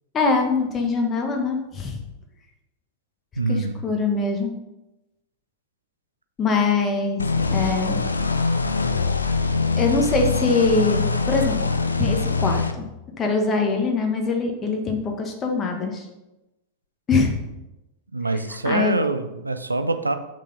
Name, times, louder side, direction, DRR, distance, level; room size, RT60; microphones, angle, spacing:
voice 1, 0.1-2.0 3.5-4.5 6.4-7.2 7.5-8.0 9.8-12.9 13.2-16.0 17.1-17.3 18.3-19.0, left 4 dB, 25° left, 2 dB, 1.4 m, -23 dB
voice 2, 3.4-3.8 18.1-20.1, right 3 dB, 80° right, 9 dB, 0.6 m, -24 dB
sound 1, 7.2-12.7, left 4 dB, 80° left, 0.6 m, -23 dB
7.2 x 5.9 x 5.2 m, 0.97 s
figure-of-eight pair, 90°, 0 cm